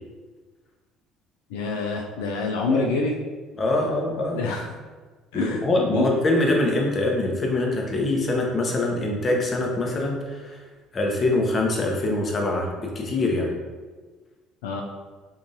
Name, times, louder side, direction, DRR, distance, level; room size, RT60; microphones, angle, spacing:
voice 1, 1.5-3.1 4.3-4.8 5.3-5.6 5.9-6.1 14.6-14.8, left 3 dB, 85° left, 1 dB, 0.3 m, -26 dB
voice 2, 3.6-4.4 5.3-10.6 10.9-13.5, left 2 dB, 35° left, 0 dB, 0.8 m, -24 dB
3.8 x 2.9 x 2.7 m, 1.4 s
supercardioid pair, 75°, 0 cm